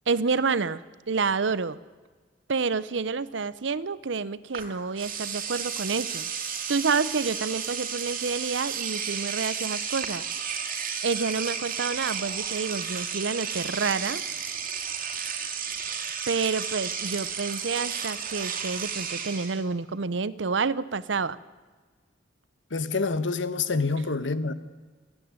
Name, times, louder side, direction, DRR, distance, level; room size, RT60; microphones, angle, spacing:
voice 1, 0.1-1.8 2.5-6.3 6.7-10.3 11.0-14.2 16.3-21.4, right 4 dB, 75° right, 0.7 m, -28 dB
Engine / Domestic sounds home sounds, 4.5-4.7 5.0-19.6, right 7 dB, 50° right, 2.7 m, -33 dB
voice 2, 22.7-24.5, left 4 dB, 85° left, 1.1 m, -27 dB
27.5 x 9.9 x 9.7 m
head